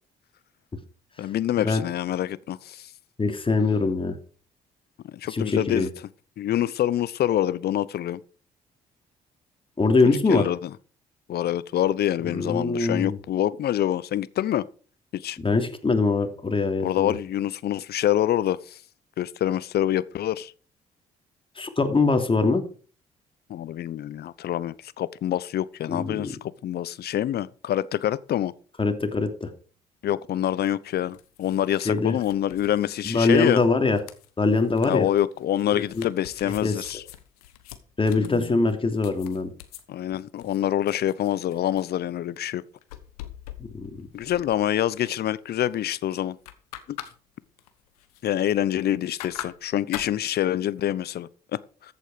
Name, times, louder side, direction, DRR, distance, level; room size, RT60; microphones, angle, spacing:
voice 1, 1.2-2.9 5.0-5.9 6.4-8.2 10.0-10.7 11.3-14.7 15.1-15.4 16.8-18.8 19.2-20.5 23.5-26.4 26.6-28.5 30.0-33.6 34.8-37.0 38.2-38.6 39.9-42.6 44.1-46.4 46.9-47.0 48.2-51.9, left 12 dB, 60° left, 0.8 m, -26 dB
voice 2, 3.2-4.2 5.3-5.9 9.8-10.5 12.3-13.2 15.4-17.1 21.6-22.6 25.9-26.3 28.8-29.5 31.8-32.2 33.0-34.0 34.4-35.1 35.9-36.0 36.6-36.7 38.0-39.5 43.7-44.1, left 3 dB, 30° left, 2.9 m, -23 dB
sound 1, 30.9-39.8 40.4-41.9 42.4-45.3 45.6-46.0 46.2-47.1 47.4-48.9 49.2-50.1, left 13 dB, 85° left, 1.2 m, -43 dB
14.0 x 8.4 x 5.0 m
hypercardioid pair, 50°, 19 cm